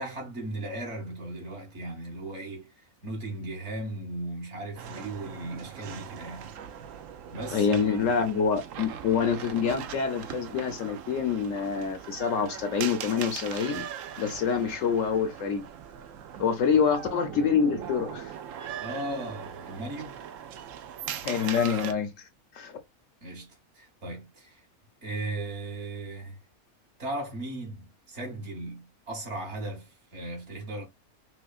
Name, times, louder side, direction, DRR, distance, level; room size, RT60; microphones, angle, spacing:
voice 1, 0.0-6.5 7.3-8.3 18.8-20.2 23.2-24.6 25.0-26.4 27.0-30.9, right 2 dB, 50° right, 1.5 m, -37 dB
sound 1, 4.8-21.9, right 9 dB, 70° right, 0.9 m, -40 dB
voice 2, 7.5-13.9 14.2-15.7 16.4-18.3 21.2-22.3 22.5-22.8, left 6 dB, 65° left, 0.9 m, -26 dB
6.0 x 2.2 x 2.4 m
omnidirectional pair, 1.6 m